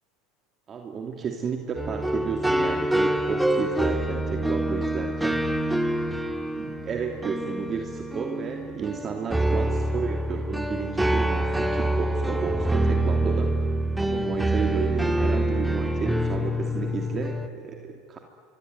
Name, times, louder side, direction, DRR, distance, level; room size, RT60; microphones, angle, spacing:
voice 1, 0.7-5.5 6.5-13.5 14.0-18.2, right 5 dB, 35° right, 3 dB, 2.8 m, -32 dB
sound 1, 1.8-17.5, right 1 dB, 5° right, 1.9 m, -26 dB
26.0 x 23.5 x 9.3 m, 2.2 s
hypercardioid pair, 85°, 0 cm